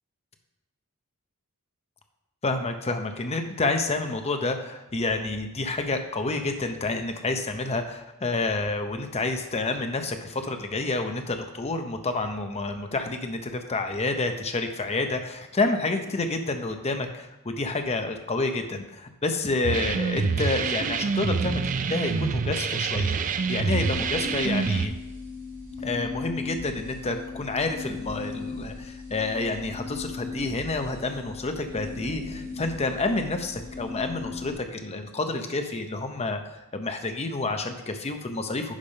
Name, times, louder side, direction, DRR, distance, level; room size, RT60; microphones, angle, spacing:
voice 1, 2.4-24.9 25.8-36.4 36.7-38.8, left 3 dB, 30° left, 6 dB, 0.7 m, -29 dB
sound 1, 19.6-24.9, right 5 dB, 35° right, 0.3 m, -26 dB
sound 2, 23.7-34.5, left 4 dB, 75° right, 3.0 m, -37 dB
10.0 x 3.5 x 5.3 m, 1.0 s
head